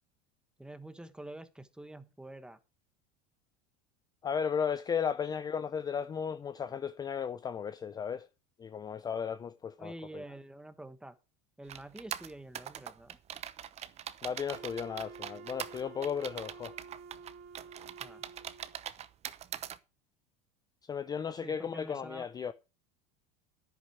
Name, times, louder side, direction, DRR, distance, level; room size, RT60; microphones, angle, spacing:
voice 1, 0.6-2.6 5.3-5.4 9.8-11.2 11.6-13.2 18.0-18.2 21.4-22.3, right 1 dB, 5° right, 1.2 m, -47 dB
voice 2, 4.2-8.3 8.6-10.2 14.2-16.7 20.9-22.5, left 7 dB, 20° left, 0.5 m, -35 dB
sound 1, 11.7-19.8, right 10 dB, 35° right, 0.9 m, -42 dB
Wind instrument woodwind instrument, 14.5-18.8, right 5 dB, 60° right, 2.4 m, -50 dB
10.0 x 10.0 x 4.7 m
supercardioid pair, 115°, 19 cm